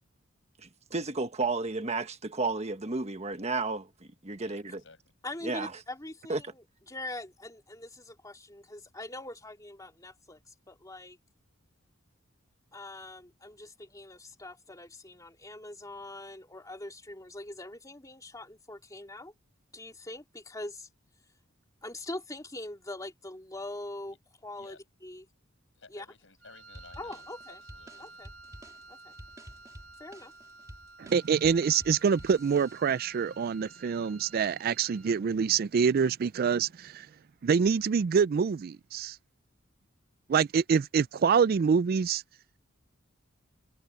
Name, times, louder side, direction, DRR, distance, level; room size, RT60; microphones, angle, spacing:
voice 1, 0.6-4.8 5.4-5.7 6.3-6.4, right 3 dB, 35° right, 1.3 m, -32 dB
voice 2, 4.4-5.0 24.1-24.2 24.6-24.8 25.8-28.3, left 4 dB, 70° left, 7.0 m, -56 dB
voice 3, 5.2-11.2 12.7-19.3 19.7-20.9 21.8-24.2 24.4-24.8 25.0-25.2 25.9-26.1 27.0-27.6 28.0-28.3 28.9-29.1 30.0-30.3, left 2 dB, 15° left, 2.8 m, -43 dB
Wind instrument woodwind instrument, 26.4-35.3, right 3 dB, 80° right, 3.7 m, -52 dB
sound 1, 26.7-33.2, equal, 15° right, 3.6 m, -51 dB
voice 4, 31.0-37.1 37.4-39.2 40.3-42.2, right 6 dB, 50° right, 0.4 m, -26 dB
head